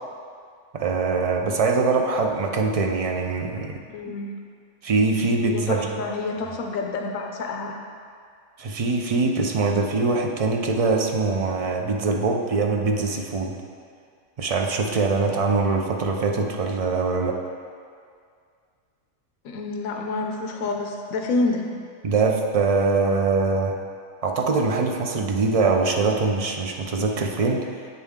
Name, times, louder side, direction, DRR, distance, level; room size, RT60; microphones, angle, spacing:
voice 1, 0.7-3.8 4.8-6.0 8.6-13.6 14.4-17.4 22.0-23.8 24.2-27.7, right 4 dB, 60° right, 2 dB, 0.3 m, -23 dB
voice 2, 3.9-4.3 5.4-7.8 19.4-21.7, left 3 dB, 90° left, 3 dB, 1.1 m, -28 dB
8.2 x 6.9 x 3.6 m, 2.2 s
omnidirectional pair, 1.4 m